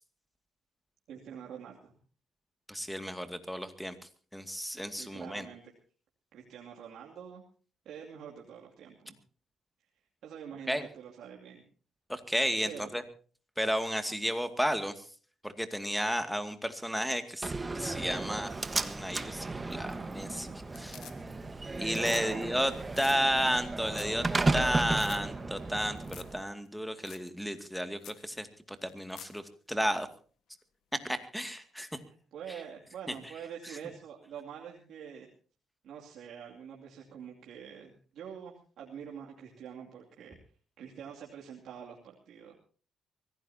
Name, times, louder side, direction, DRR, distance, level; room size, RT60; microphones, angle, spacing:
voice 1, 1.1-2.0 4.9-5.6 6.3-7.4 7.8-9.2 10.2-11.6 12.6-12.9 22.0-22.6 32.0-35.3 35.8-40.4 40.8-42.6, right 8 dB, 75° right, -1 dB, 2.6 m, -46 dB
voice 2, 2.7-3.9 4.3-5.5 10.7-10.8 12.1-13.0 13.6-15.0 15.4-18.5 18.8-21.0 21.8-24.3 24.5-29.4 29.7-30.1 30.9-31.9, equal, ahead, 8 dB, 2.3 m, -32 dB
Slam, 17.4-26.4, right 3 dB, 25° right, 1.4 m, -34 dB
sound 1, 19.9-20.3 20.6-21.5 21.8-22.3 22.5-22.6 22.9-23.2 23.6-23.7 23.9-24.2 24.5-24.6 24.9-25.2 26.0-26.4 26.6-26.7 27.1-27.3 27.6-27.7 28.0-28.2 28.9-29.4 31.6-31.7, left 11 dB, 80° left, 1.5 m, -49 dB
24.5 x 17.0 x 2.8 m, 0.40 s
cardioid pair, 90°, 0 cm